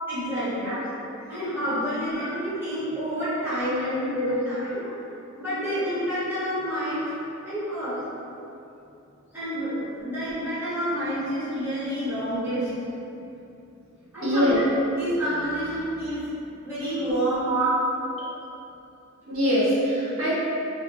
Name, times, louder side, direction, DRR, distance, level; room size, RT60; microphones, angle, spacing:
voice 1, 0.1-0.7 1.2-4.8 5.4-7.0 7.4-7.9 9.3-12.7 13.1-13.3 14.1-14.6 15.0-16.2 16.6-17.4, equal, 10° right, -14 dB, 1.1 m, -28 dB
voice 2, 14.2-14.6 17.4-17.8 19.3-20.3, equal, 90° right, -11 dB, 1.0 m, -24 dB
2.9 x 2.0 x 2.4 m, 2.8 s
head